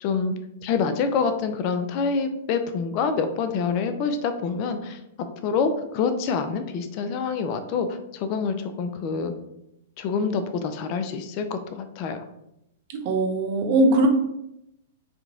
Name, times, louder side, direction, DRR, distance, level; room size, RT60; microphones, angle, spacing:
voice 1, 0.0-0.3 0.6-5.0 5.4-9.3 10.0-12.2, left 5 dB, 45° left, 8 dB, 0.4 m, -26 dB
voice 2, 12.9-14.1, right 2 dB, 50° right, 3 dB, 0.7 m, -20 dB
2.9 x 2.5 x 3.7 m, 0.83 s
hypercardioid pair, 115°, 0 cm